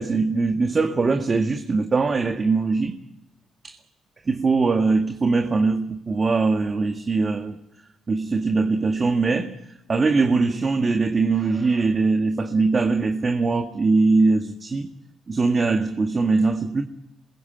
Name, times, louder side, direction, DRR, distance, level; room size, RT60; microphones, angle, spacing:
voice 1, 0.0-3.0 3.6-3.8 4.3-7.6 8.1-9.6 9.9-14.9 15.3-16.8, right 3 dB, 35° right, 1.8 m, -21 dB
27.0 x 21.5 x 8.8 m
cardioid pair, 90°, 0 cm